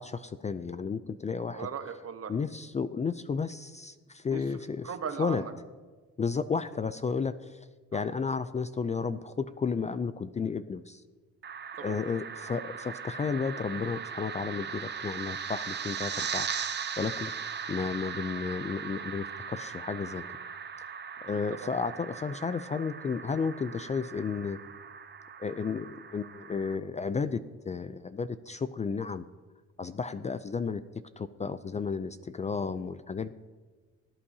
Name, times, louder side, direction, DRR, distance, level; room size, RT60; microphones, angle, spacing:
voice 1, 0.0-1.7 2.3-4.8 5.2-5.4 6.2-7.6 7.9-11.0 11.8-16.5 17.0-20.2 21.2-24.6 25.4-27.4 27.7-29.2 29.8-30.8 31.2-33.3, left 5 dB, 25° left, 13 dB, 0.4 m, -32 dB
voice 2, 1.5-2.3 4.3-4.6 4.8-5.5 7.9-8.0 11.8-12.0 21.3-21.7, right 7 dB, 50° right, 8 dB, 1.1 m, -38 dB
reversed women, 11.4-26.8, right 7 dB, 35° right, 0.8 m, -39 dB
18.5 x 8.7 x 2.8 m, 1.4 s
cardioid pair, 90°, 30 cm